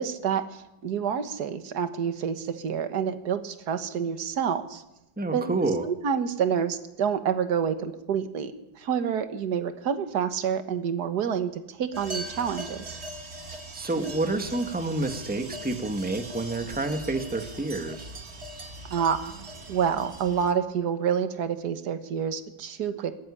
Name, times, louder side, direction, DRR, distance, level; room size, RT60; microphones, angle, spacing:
voice 1, 0.0-4.8 5.3-5.5 5.9-13.0 18.9-19.3 19.7-23.2, right 7 dB, 55° right, 9 dB, 1.9 m, -28 dB
voice 2, 5.2-5.8 13.7-18.1, right 2 dB, 5° right, 6 dB, 1.6 m, -28 dB
sound 1, 11.9-20.5, right 1 dB, 35° right, 2.1 m, -40 dB
21.5 x 14.0 x 10.0 m, 0.91 s
omnidirectional pair, 2.1 m